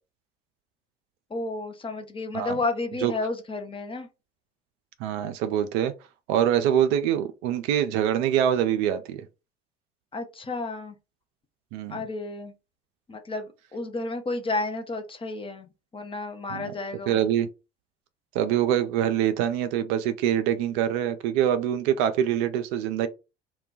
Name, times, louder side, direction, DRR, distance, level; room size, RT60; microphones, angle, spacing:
voice 1, 1.3-4.1 10.1-10.9 11.9-12.5 13.1-17.3, left 3 dB, 20° left, 0.5 m, -32 dB
voice 2, 5.0-5.9 6.3-9.3 11.7-12.0 16.5-16.7 17.1-17.5 18.3-23.1, right 10 dB, 50° right, 0.4 m, -24 dB
2.2 x 2.2 x 3.8 m
figure-of-eight pair, 60°, 31 cm